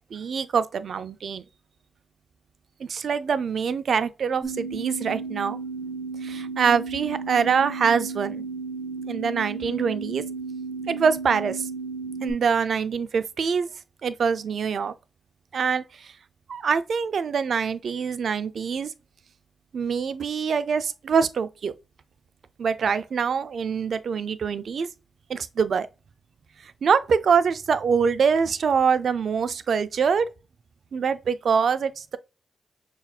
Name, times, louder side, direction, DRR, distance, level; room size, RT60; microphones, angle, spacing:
voice 1, 0.1-1.4 2.8-5.6 6.2-8.4 9.1-10.2 10.9-11.7 12.2-13.7 14.0-14.9 15.5-16.1 16.5-18.9 19.7-21.7 22.6-24.9 25.3-25.9 26.6-30.3 30.9-32.2, right 6 dB, 70° right, 0.3 m, -24 dB
sound 1, 4.4-12.3, right 4 dB, 15° right, 0.8 m, -34 dB
5.5 x 2.4 x 2.2 m
supercardioid pair, 50°, 0 cm